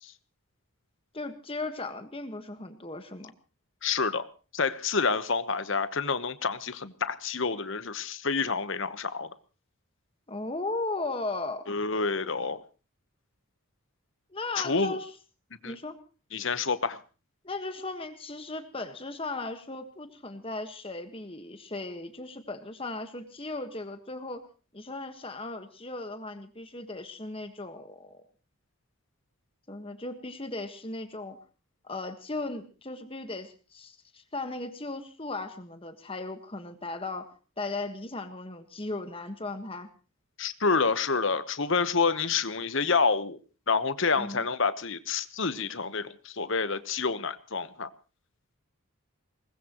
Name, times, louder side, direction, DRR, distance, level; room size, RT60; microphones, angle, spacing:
voice 1, 1.1-3.3 10.3-11.7 14.3-15.1 15.6-16.0 17.4-24.5 24.7-28.2 29.7-31.4 31.8-39.9 44.2-44.5, left 2 dB, 25° left, 8 dB, 1.5 m, -37 dB
voice 2, 3.8-4.3 4.5-9.3 11.7-12.6 14.5-15.0 15.6-15.7 16.3-17.0 40.4-43.4 43.7-47.9, left 4 dB, 55° left, 13 dB, 1.1 m, -28 dB
22.0 x 20.0 x 3.1 m, 0.34 s
head